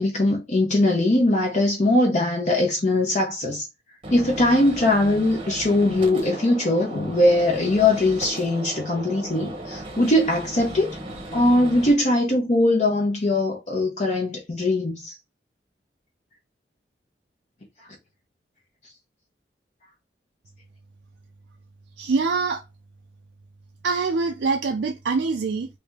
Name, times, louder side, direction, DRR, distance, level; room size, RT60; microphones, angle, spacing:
voice 1, 0.0-3.7 4.1-10.9 11.3-15.2, left 1 dB, 40° left, 0.7 m, -21 dB
Gunshot gunfire, 4.0-11.9, right 1 dB, 30° right, 0.8 m, -36 dB
voice 2, 22.0-22.6 23.8-25.7, right 4 dB, 85° right, 0.4 m, -24 dB
3.3 x 2.7 x 3.5 m
head